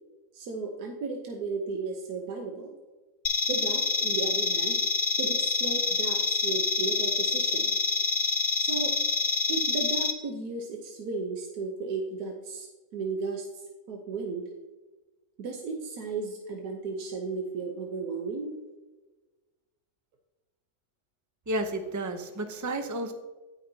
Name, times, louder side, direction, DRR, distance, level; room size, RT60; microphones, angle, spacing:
voice 1, 0.3-2.7 3.5-4.8 5.2-7.7 8.6-8.9 9.5-12.7 12.9-13.5 13.9-14.5 15.4-18.5, right 4 dB, 85° right, 2 dB, 1.4 m, -34 dB
sound 1, 3.2-10.1, left 4 dB, 65° left, 0.3 m, -27 dB
voice 2, 21.5-23.1, right 1 dB, 30° right, 6 dB, 0.3 m, -31 dB
16.5 x 5.7 x 2.8 m, 1.2 s
omnidirectional pair, 1.6 m